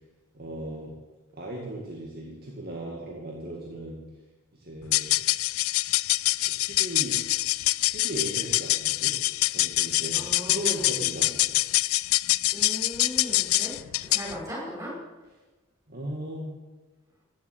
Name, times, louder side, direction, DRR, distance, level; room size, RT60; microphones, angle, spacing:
voice 1, 0.3-0.9 1.3-4.0 4.5-5.2 6.4-7.2 7.9-9.2 9.5-11.6 15.9-16.6, right 1 dB, 45° right, -2 dB, 2.1 m, -37 dB
sound 1, 4.8-14.4, left 18 dB, 75° left, 0.3 m, -25 dB
voice 2, 10.1-10.9 12.5-13.7 14.1-14.9, equal, 15° right, -5 dB, 5.4 m, -37 dB
15.5 x 7.4 x 8.2 m, 1.2 s
head